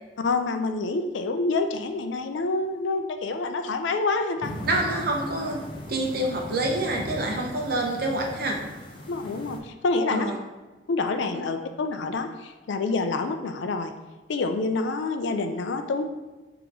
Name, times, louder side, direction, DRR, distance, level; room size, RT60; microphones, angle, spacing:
voice 1, 0.2-4.5 9.1-10.3 10.9-13.9 14.3-16.0, left 3 dB, 80° left, 7 dB, 0.4 m, -27 dB
sound 1, 4.4-9.6, equal, 25° left, 0.6 m, -38 dB
voice 2, 4.7-5.6 5.9-8.6 10.1-10.3, right 1 dB, 55° right, 0 dB, 0.8 m, -27 dB
3.9 x 2.9 x 4.6 m, 1.2 s
head